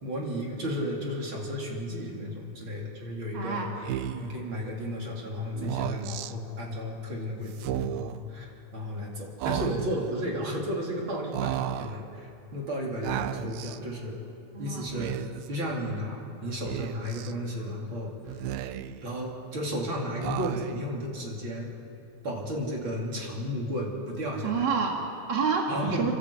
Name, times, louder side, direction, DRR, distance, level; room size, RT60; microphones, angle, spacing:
voice 1, 0.0-3.7 4.0-14.2 14.6-15.1 15.5-18.1 18.7-21.7 22.2-24.7 25.7-26.1, equal, 35° right, -2 dB, 3.4 m, -33 dB
voice 2, 3.3-3.7 14.5-14.9 24.4-25.7 26.0-26.1, right 5 dB, 55° right, 0 dB, 1.2 m, -28 dB
Speech, 3.8-4.4 5.5-6.3 7.5-8.2 9.4-10.1 11.3-12.0 13.0-13.8 14.8-15.5 16.7-17.3 18.3-19.1 20.2-20.9, right 12 dB, 80° right, 2.3 m, -33 dB
30.0 x 11.5 x 8.3 m, 2.9 s
omnidirectional pair, 4.8 m